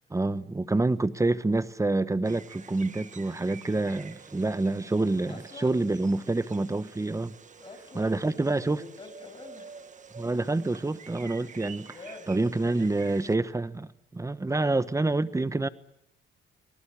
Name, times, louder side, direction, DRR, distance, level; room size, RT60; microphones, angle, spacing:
voice 1, 0.1-7.3 7.9-8.8 10.2-11.9 12.3-15.7, right 2 dB, 15° right, 1.1 m, -27 dB
sound 1, 2.2-13.4, right 6 dB, 40° right, 1.5 m, -49 dB
voice 2, 5.3-5.9 7.6-9.9 11.4-11.6 11.9-13.1, left 3 dB, 25° left, 7.1 m, -47 dB
27.5 x 19.5 x 8.6 m
cardioid pair, 90°, 20 cm